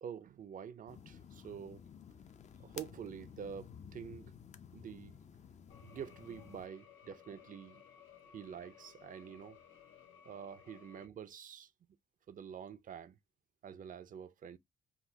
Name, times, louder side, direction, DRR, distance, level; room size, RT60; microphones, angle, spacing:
voice 1, 0.0-1.8 2.6-4.3 4.7-5.2 5.8-7.8 8.3-9.6 10.2-11.7 12.3-13.2 13.6-14.6, right 8 dB, 45° right, 0.5 m, -47 dB
sound 1, 0.9-6.7, left 7 dB, 35° left, 0.5 m, -53 dB
sound 2, 5.7-11.1, left 8 dB, 80° left, 1.1 m, -59 dB
4.0 x 2.3 x 2.7 m
cardioid pair, 90°, 20 cm